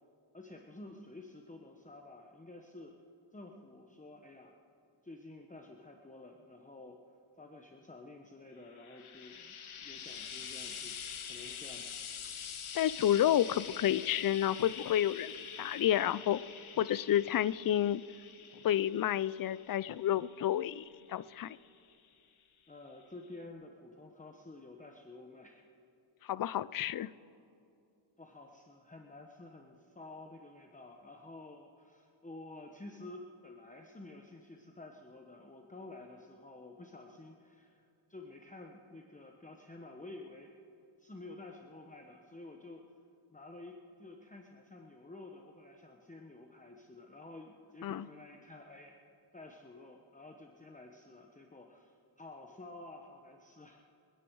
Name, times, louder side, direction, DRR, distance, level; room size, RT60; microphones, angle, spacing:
voice 1, 0.3-2.9 3.3-4.6 5.0-7.0 7.4-9.5 9.8-12.0 22.7-25.6 28.2-40.5 41.0-42.8 43.3-49.0 49.3-53.9, left 2 dB, 15° left, 2 dB, 1.0 m, -51 dB
Frying (food), 8.6-22.1 23.0-23.1, left 7 dB, 80° left, 1.1 m, -46 dB
voice 2, 12.7-16.4 16.8-18.0 18.6-21.6 26.2-27.1 47.8-48.1, left 11 dB, 45° left, 18 dB, 0.4 m, -30 dB
27.5 x 9.9 x 4.7 m, 2.5 s
wide cardioid pair, 80°, 48 cm